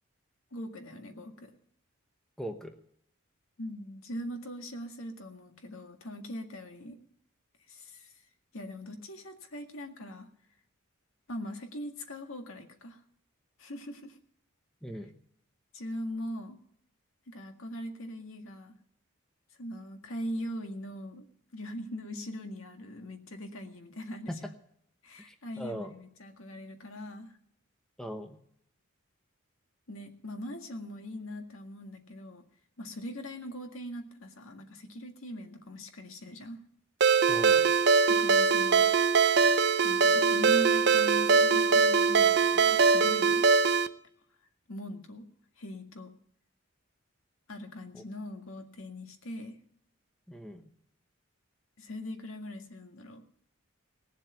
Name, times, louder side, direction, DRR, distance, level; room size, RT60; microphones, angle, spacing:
voice 1, 0.5-1.5 3.6-7.0 7.7-8.1 8.5-10.3 11.3-13.0 13.6-14.2 15.7-16.6 17.3-18.7 19.6-21.3 21.5-24.3 25.0-27.4 29.9-32.4 32.8-36.6 38.1-38.9 39.8-43.5 44.7-45.3 45.6-46.1 47.5-49.6 51.8-53.2, left 1 dB, 80° left, 5 dB, 1.8 m, -41 dB
voice 2, 2.4-2.8 14.8-15.1 24.3-24.5 25.3-25.9 28.0-28.4 37.3-37.7 47.9-48.0 50.3-50.7, equal, ahead, 5 dB, 1.0 m, -40 dB
Ringtone, 37.0-43.9, right 5 dB, 55° right, 0.6 m, -22 dB
18.5 x 7.5 x 7.9 m, 0.71 s
head